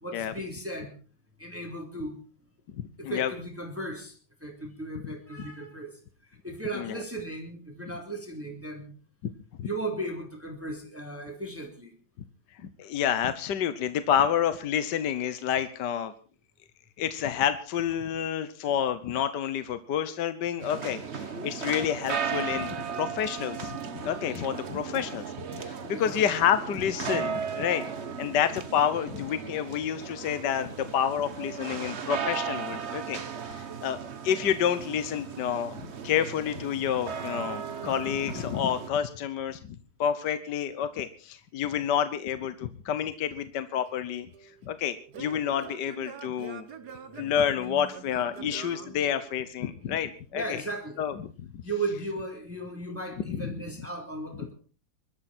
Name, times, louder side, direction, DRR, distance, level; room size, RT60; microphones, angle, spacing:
voice 1, 0.0-0.9 1.4-2.2 3.0-4.1 4.4-6.0 6.4-8.9 9.6-11.9 25.9-26.2 30.3-30.8 31.6-32.0 47.6-47.9 48.8-49.0 49.8-49.9 50.3-51.0 51.6-54.5, right 2 dB, 5° right, 2 dB, 3.3 m, -36 dB
voice 2, 2.8-3.3 5.0-5.1 5.4-5.5 6.7-6.9 9.6-9.7 12.6-16.1 17.0-25.2 25.5-27.8 28.2-34.0 34.2-44.3 44.6-46.6 47.1-50.6 51.0-51.3 53.2-53.5, left 9 dB, 70° left, 12 dB, 1.6 m, -29 dB
sound 1, 20.6-38.9, right 6 dB, 40° right, 1.3 m, -36 dB
Singing / Plucked string instrument, 43.9-49.7, right 7 dB, 60° right, 1.8 m, -45 dB
24.0 x 13.0 x 4.4 m, 0.38 s
omnidirectional pair, 2.0 m